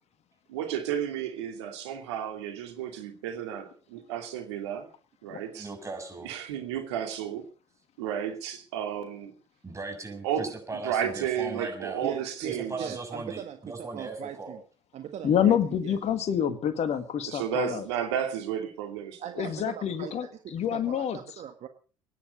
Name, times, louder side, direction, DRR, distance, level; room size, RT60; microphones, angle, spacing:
voice 1, 0.5-4.9 5.2-5.7 6.2-7.4 8.0-9.3 10.2-12.9 17.2-19.4, right 9 dB, 75° right, 5 dB, 2.8 m, -32 dB
voice 2, 5.5-6.3 9.6-12.1 12.5-14.5, right 3 dB, 20° right, 4 dB, 6.5 m, -38 dB
voice 3, 12.0-14.6 14.9-16.0 19.2-20.3 20.6-21.7, right 9 dB, 50° right, 7 dB, 1.6 m, -40 dB
voice 4, 15.2-17.8 19.4-21.2, left 9 dB, 50° left, 10 dB, 2.1 m, -27 dB
23.0 x 10.0 x 5.3 m, 0.40 s
hypercardioid pair, 60°, 14 cm